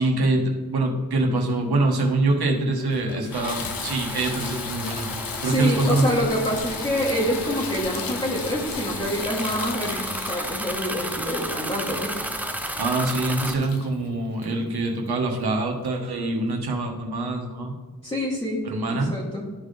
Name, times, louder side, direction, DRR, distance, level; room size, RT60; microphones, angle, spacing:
voice 1, 0.0-5.1 5.4-6.1 12.8-17.7 18.6-19.1, right 2 dB, 85° right, 1 dB, 1.4 m, -24 dB
Water tap faucet / Bathtub (filling or washing), 2.2-2.3 2.8-15.2 15.9-16.0 16.5-16.6, left 6 dB, 65° left, 0.7 m, -36 dB
sound 1, 3.3-13.6, right 1 dB, 5° right, 0.5 m, -33 dB
voice 2, 5.4-12.2 18.0-19.5, equal, 15° left, -6 dB, 1.2 m, -27 dB
12.0 x 4.3 x 3.3 m, 1.4 s
wide cardioid pair, 150°, 37 cm